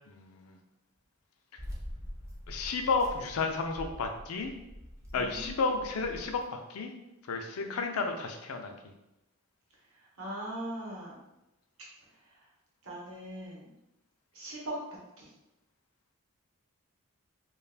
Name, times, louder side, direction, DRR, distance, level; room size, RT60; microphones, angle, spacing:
voice 1, 0.1-0.6 2.5-4.5 5.1-6.9 7.3-8.7, left 4 dB, 75° left, 4 dB, 0.4 m, -32 dB
sound 1, 1.6-6.4, equal, 10° right, 0.4 m, -45 dB
voice 2, 5.1-5.5 7.6-7.9 9.9-11.2 12.8-13.7 14.3-14.8 15.2-15.3, right 1 dB, 75° right, -4 dB, 0.9 m, -40 dB
2.4 x 2.3 x 3.3 m, 0.92 s
head